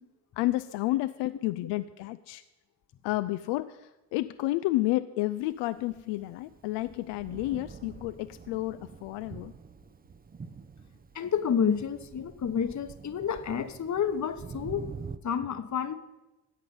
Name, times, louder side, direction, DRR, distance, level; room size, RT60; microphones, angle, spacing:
voice 1, 0.4-2.4 3.0-9.5, left 17 dB, 70° left, 12 dB, 0.5 m, -31 dB
Thunder, 5.7-15.2, right 5 dB, 20° right, 0.6 m, -46 dB
voice 2, 11.1-14.9 15.2-15.9, left 7 dB, 40° left, 11 dB, 1.0 m, -29 dB
13.5 x 8.4 x 5.4 m, 1.0 s
hypercardioid pair, 50°, 45 cm